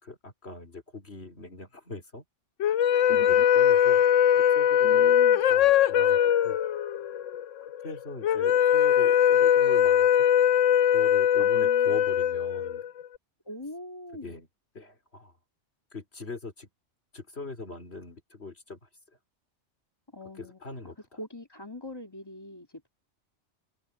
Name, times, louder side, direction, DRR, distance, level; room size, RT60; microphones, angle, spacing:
voice 1, 0.0-2.2 3.1-4.0 4.3-5.2 5.5-6.6 7.6-10.3 10.9-12.8 14.2-14.5 14.7-15.3 15.9-16.7 17.1-18.9 20.4-20.9, left 3 dB, 60° left, 4.2 m, -41 dB
sound 1, 2.6-13.0, left 9 dB, 85° left, 1.0 m, -21 dB
voice 2, 3.1-3.4 4.8-5.4 11.4-12.0 13.4-14.4 20.1-22.9, left 2 dB, 20° left, 2.8 m, -42 dB
omnidirectional pair, 1.2 m